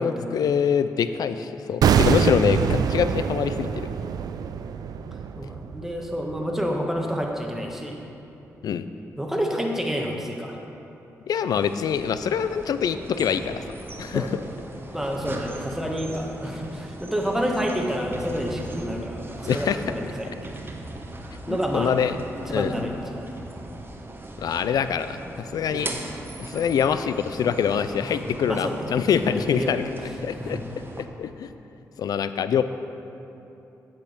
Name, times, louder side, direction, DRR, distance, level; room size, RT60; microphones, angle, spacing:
voice 1, 0.0-3.9 8.6-8.9 11.3-13.6 14.0-14.3 19.5-19.8 21.5-22.2 22.5-22.7 24.4-25.2 25.5-25.9 26.4-29.8 30.2-30.6 31.2-31.5 32.0-32.6, left 7 dB, 75° left, 11 dB, 0.4 m, -24 dB
sound 1, 1.8-6.8 7.1-7.3, right 7 dB, 75° right, 0.3 m, -24 dB
voice 2, 5.4-8.0 9.2-10.6 14.1-14.3 14.9-20.6 21.5-21.9 22.5-23.3 25.7-25.9 28.0-28.1 28.5-28.8 29.2-29.8 30.4-30.6, equal, 5° right, 0 dB, 1.4 m, -29 dB
sound 2, 11.5-31.1, right 2 dB, 35° right, 0.9 m, -39 dB
8.2 x 6.3 x 5.1 m, 3.0 s
supercardioid pair, 50°, 7 cm